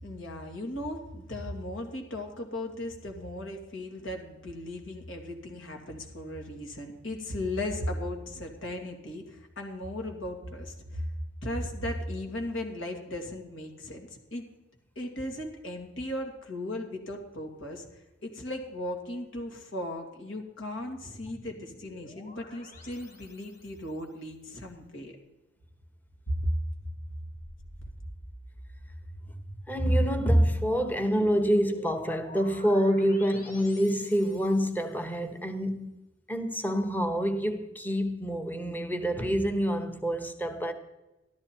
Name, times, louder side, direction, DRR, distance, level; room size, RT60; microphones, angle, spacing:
voice 1, 0.0-11.1 11.4-14.4 15.0-25.2 26.3-26.5 27.8-27.9, left 1 dB, 90° left, 2.5 m, -36 dB
sound 1, 20.8-23.9 27.2-34.9, equal, 45° left, 1.8 m, -48 dB
voice 2, 29.7-36.0 36.3-40.7, equal, 10° left, 1.1 m, -27 dB
13.5 x 12.5 x 4.5 m
head